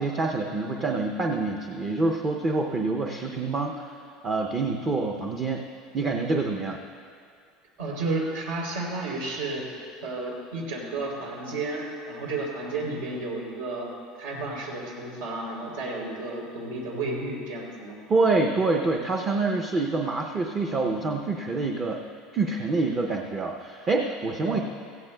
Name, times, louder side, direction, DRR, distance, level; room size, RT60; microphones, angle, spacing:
voice 1, 0.0-3.9 4.2-5.6 5.9-6.8 18.1-22.0 22.3-24.6, right 3 dB, 20° right, 2 dB, 0.5 m, -26 dB
voice 2, 7.8-9.6 10.0-13.9 14.2-18.0 24.5-24.6, right 2 dB, 90° right, -1 dB, 3.2 m, -32 dB
17.0 x 15.5 x 2.2 m, 2.2 s
cardioid pair, 175°, 0 cm